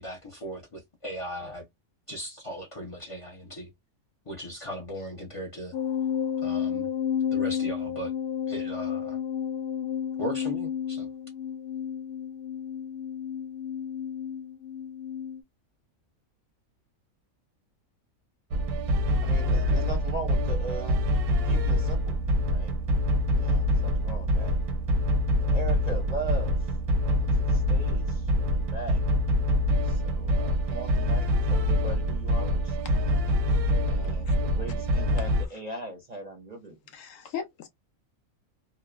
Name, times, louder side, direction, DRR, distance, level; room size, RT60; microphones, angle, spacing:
voice 1, 0.0-1.6 2.1-3.7 4.3-5.7 6.4-6.9 7.3-8.1 8.5-9.2 10.2-11.1, equal, 45° left, 0.4 m, -38 dB
sound 1, 5.7-15.4, left 8 dB, 90° left, 1.1 m, -31 dB
sound 2, 18.5-35.5, equal, 85° right, 1.1 m, -25 dB
voice 2, 19.2-21.1 21.4-22.2 22.5-22.7 23.3-24.6 25.5-26.7 27.0-29.0 29.8-33.0 33.8-36.8, right 2 dB, 40° right, 0.6 m, -39 dB
voice 3, 36.9-37.7, left 7 dB, 70° left, 0.9 m, -37 dB
2.9 x 2.1 x 2.2 m
omnidirectional pair, 1.5 m